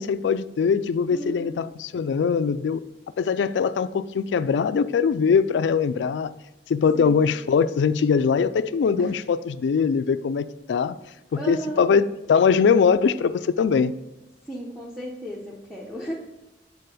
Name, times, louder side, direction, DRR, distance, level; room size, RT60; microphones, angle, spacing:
voice 1, 0.0-2.8 3.2-6.3 6.7-11.0 11.3-13.9, left 6 dB, 80° left, 0.3 m, -22 dB
voice 2, 1.1-1.6 6.9-7.3 9.0-9.1 11.3-11.9 14.4-16.1, equal, ahead, 0.7 m, -34 dB
6.8 x 4.1 x 5.1 m
head